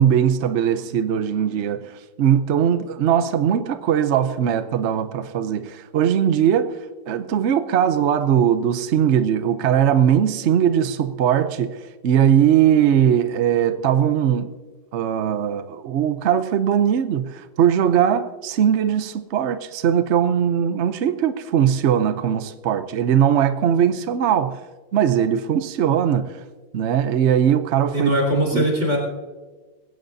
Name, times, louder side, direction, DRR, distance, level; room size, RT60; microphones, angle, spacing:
voice 1, 0.0-6.8 7.1-14.5 14.9-24.6 24.9-26.4 26.7-28.1 28.5-28.6, right 9 dB, 80° right, 0.6 m, -20 dB
voice 2, 27.9-29.0, right 1 dB, 35° right, 4.4 m, -20 dB
21.0 x 16.5 x 2.7 m
omnidirectional pair, 2.0 m